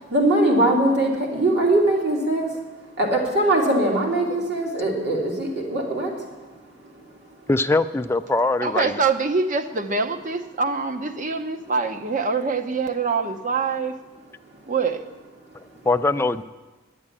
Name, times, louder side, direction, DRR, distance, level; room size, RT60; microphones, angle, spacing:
voice 1, 0.1-2.5 3.0-6.1, right 1 dB, 60° right, -2 dB, 3.3 m, -21 dB
voice 2, 7.5-9.1 15.9-16.4, left 2 dB, 15° left, 8 dB, 0.4 m, -22 dB
voice 3, 8.6-13.9 14.7-15.0, right 4 dB, 45° right, 7 dB, 0.8 m, -24 dB
10.5 x 8.8 x 9.7 m, 1.2 s
head